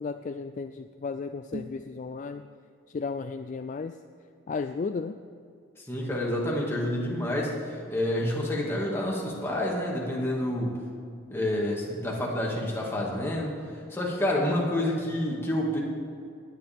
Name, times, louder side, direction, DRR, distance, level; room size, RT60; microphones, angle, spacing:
voice 1, 0.0-2.5 2.9-4.0 4.5-5.2, left 4 dB, 40° left, 8 dB, 0.3 m, -34 dB
sound 1, 1.4-1.9, right 1 dB, 60° right, 0.9 m, -40 dB
voice 2, 5.9-10.8 11.3-13.6 13.9-15.8, left 1 dB, 10° left, -3 dB, 2.2 m, -28 dB
19.0 x 10.5 x 3.6 m, 2.4 s
head